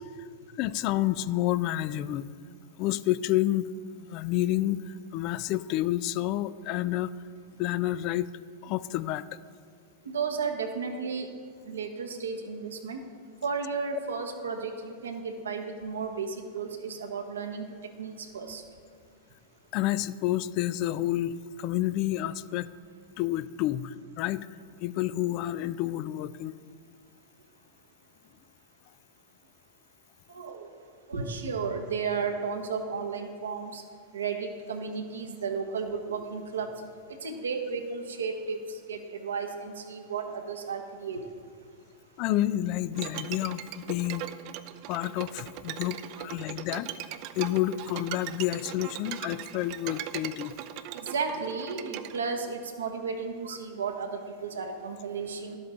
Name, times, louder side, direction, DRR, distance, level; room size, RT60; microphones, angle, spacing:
voice 1, 0.6-2.3 2.8-3.7 4.0-7.1 7.6-8.3 8.6-9.2 19.7-22.7 23.2-24.5 24.8-26.5 42.2-44.2 44.9-46.9 47.4-50.5, left 14 dB, 50° left, 16 dB, 0.3 m, -29 dB
voice 2, 10.1-11.3 11.7-13.0 13.4-16.3 16.5-17.6 18.0-18.6 30.4-30.6 31.1-33.8 34.1-36.7 37.2-38.6 38.9-39.0 39.2-41.2 51.1-54.1 54.4-55.5, right 5 dB, 85° right, 5 dB, 1.0 m, -33 dB
Bowed string instrument, 42.9-52.2, right 12 dB, 55° right, 0.5 m, -39 dB
11.5 x 7.8 x 3.8 m, 2.1 s
hypercardioid pair, 100°, 0 cm